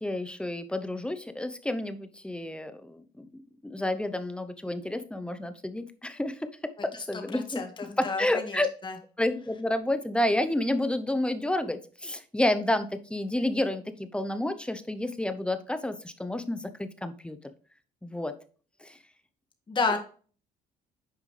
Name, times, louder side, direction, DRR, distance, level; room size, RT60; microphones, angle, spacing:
voice 1, 0.0-3.3 3.6-6.5 6.8-7.6 8.0-8.7 9.2-17.4 18.0-18.3 18.8-19.0, left 1 dB, 5° left, 10 dB, 0.7 m, -30 dB
voice 2, 7.3-9.0 19.7-20.0, left 4 dB, 30° left, 4 dB, 1.8 m, -31 dB
9.0 x 5.3 x 3.3 m, 0.41 s
cardioid pair, 110°, 17 cm